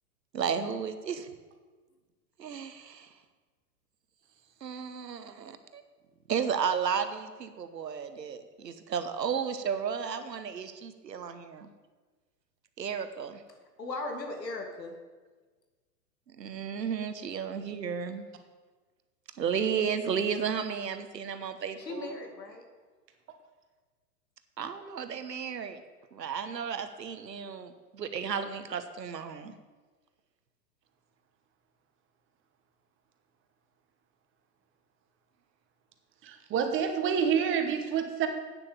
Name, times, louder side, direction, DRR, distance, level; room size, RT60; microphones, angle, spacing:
voice 1, 0.3-1.3 2.4-3.1 4.6-5.8 6.3-11.7 12.8-13.4 16.3-18.3 19.4-22.2 24.6-25.8 26.1-29.5, right 7 dB, 90° right, 10 dB, 1.2 m, -33 dB
voice 2, 13.8-15.0 21.8-22.6, left 2 dB, 90° left, 3 dB, 2.4 m, -37 dB
voice 3, 36.2-38.3, right 7 dB, 25° right, 6 dB, 1.2 m, -28 dB
9.1 x 7.2 x 7.0 m, 1.4 s
hypercardioid pair, 120°, 48 cm